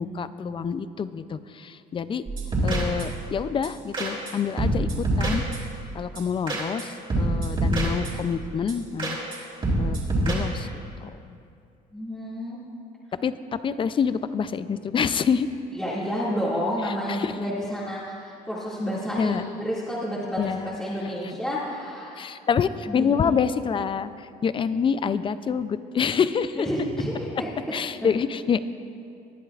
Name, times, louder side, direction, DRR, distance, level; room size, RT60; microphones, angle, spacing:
voice 1, 0.0-2.2 2.6-5.4 5.9-9.2 9.8-10.0 10.3-11.4 13.2-15.5 17.2-17.3 19.2-19.5 20.4-20.7 22.2-26.7 27.7-28.6, left 7 dB, 30° left, 14 dB, 0.4 m, -27 dB
sound 1, 2.3-3.3 3.6-3.7 3.9-4.3 4.6-5.8 6.2-6.8 7.1-8.3 8.7-8.8 9.0-9.4 9.6-10.3, right 2 dB, 30° right, 3.2 m, -26 dB
voice 2, 11.9-12.6 15.7-22.3 22.9-23.4 26.6-27.5 28.0-28.1, equal, 5° left, -10 dB, 2.1 m, -30 dB
19.0 x 10.5 x 2.4 m, 2.5 s
cardioid pair, 110°, 17 cm